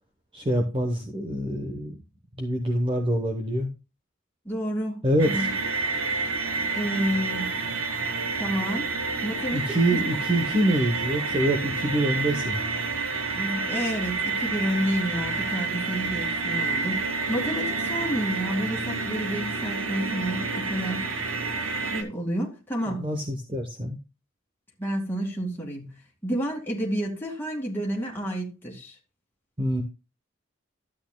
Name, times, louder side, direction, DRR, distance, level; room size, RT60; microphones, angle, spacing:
voice 1, 0.3-2.0 2.4-3.7 5.0-5.5 9.5-12.6 22.9-24.0 29.6-29.8, right 1 dB, 25° right, 0.9 m, -25 dB
voice 2, 4.5-5.5 6.7-7.5 8.4-8.9 9.2-10.0 13.4-21.1 21.9-23.1 24.8-25.9 26.2-29.0, equal, 10° left, 2.3 m, -30 dB
sound 1, 5.2-22.0, right 4 dB, 85° right, 1.4 m, -29 dB
12.5 x 8.4 x 2.2 m
head